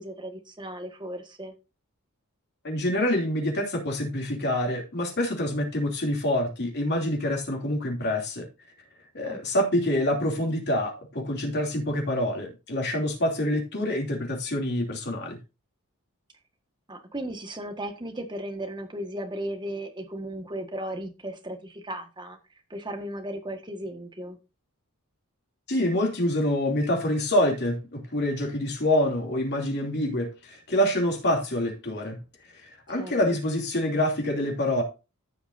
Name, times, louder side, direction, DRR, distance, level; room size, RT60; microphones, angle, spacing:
voice 1, 0.0-1.5 9.2-9.4 16.9-22.4 22.7-24.4 32.9-33.4, right 1 dB, 20° right, 1.6 m, -36 dB
voice 2, 2.6-8.5 9.1-15.4 25.7-32.2 32.5-34.8, left 1 dB, 50° left, 2.9 m, -26 dB
15.0 x 6.0 x 2.7 m
head